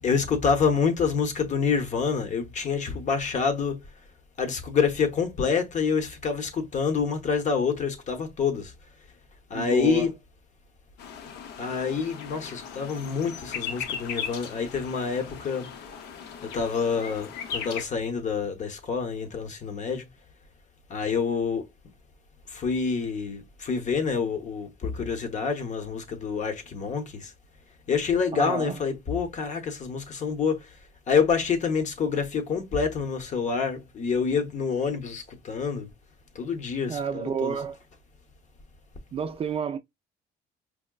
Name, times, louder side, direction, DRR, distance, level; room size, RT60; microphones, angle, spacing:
voice 1, 0.0-3.8 4.4-8.7 9.5-10.1 11.6-15.7 16.4-20.1 20.9-21.7 22.5-27.3 27.9-30.8 31.1-35.9 36.3-37.6, left 5 dB, 45° left, 0.8 m, -27 dB
voice 2, 9.5-10.1 28.3-28.8 36.9-37.8 39.1-39.8, right 7 dB, 35° right, 0.4 m, -30 dB
sound 1, 11.0-17.8, left 7 dB, 75° left, 0.6 m, -38 dB
4.8 x 2.1 x 2.3 m
cardioid pair, 110°, 17 cm